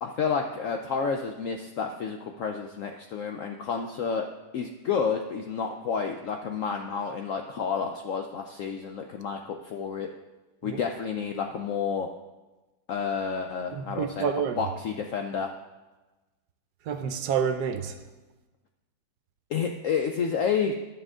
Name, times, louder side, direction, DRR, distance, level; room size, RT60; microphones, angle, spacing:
voice 1, 0.0-4.3 4.5-10.1 10.6-12.1 12.9-14.3 14.6-15.5 19.5-20.7, left 6 dB, 70° left, 4 dB, 0.8 m, -30 dB
voice 2, 13.7-14.6 16.9-18.0, right 7 dB, 70° right, 8 dB, 1.1 m, -28 dB
10.5 x 7.4 x 3.7 m, 1.1 s
omnidirectional pair, 1.9 m